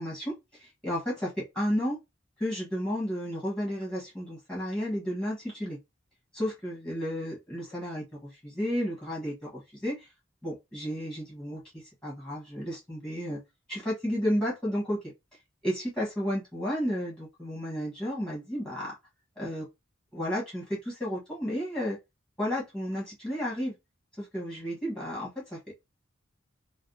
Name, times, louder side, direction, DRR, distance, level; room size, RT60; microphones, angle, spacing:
voice 1, 0.0-2.0 2.4-5.8 6.3-10.1 10.4-13.4 13.7-15.0 15.6-18.9 19.4-19.7 20.1-22.0 22.4-23.7 24.2-25.6, equal, 5° left, 1.2 m, -32 dB
3.4 x 2.2 x 2.6 m
head